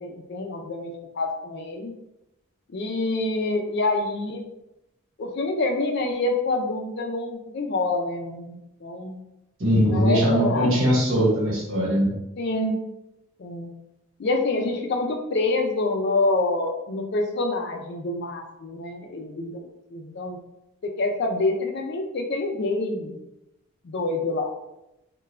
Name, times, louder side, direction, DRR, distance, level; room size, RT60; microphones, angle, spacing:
voice 1, 0.0-1.9 2.7-4.5 5.2-9.2 9.9-10.8 12.4-12.8 13.4-13.7 14.2-20.4 20.8-23.2 23.8-24.5, left 2 dB, 50° left, 4 dB, 0.4 m, -27 dB
voice 2, 9.6-12.1, equal, 65° right, -6 dB, 1.2 m, -21 dB
2.3 x 2.2 x 3.1 m, 0.89 s
head